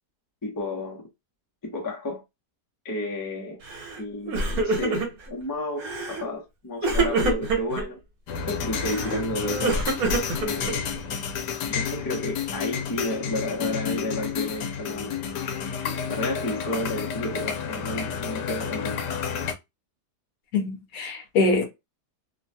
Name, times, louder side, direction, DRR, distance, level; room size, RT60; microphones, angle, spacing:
voice 1, 0.4-1.0 1.6-2.2 2.8-3.6 4.0-8.0 8.5-9.9 10.4-11.1 11.7-15.1 16.1-19.0, left 1 dB, 30° left, 0.3 m, -31 dB
Crying sobbing, 3.7-4.0 4.3-5.3 5.8-6.3 6.8-7.8 8.7-11.0, right 3 dB, 60° right, 1.4 m, -26 dB
sound 1, 8.3-19.5, left 7 dB, 85° left, 1.2 m, -31 dB
voice 2, 20.5-21.7, left 3 dB, 65° left, 1.1 m, -24 dB
3.1 x 2.2 x 2.6 m
omnidirectional pair, 1.8 m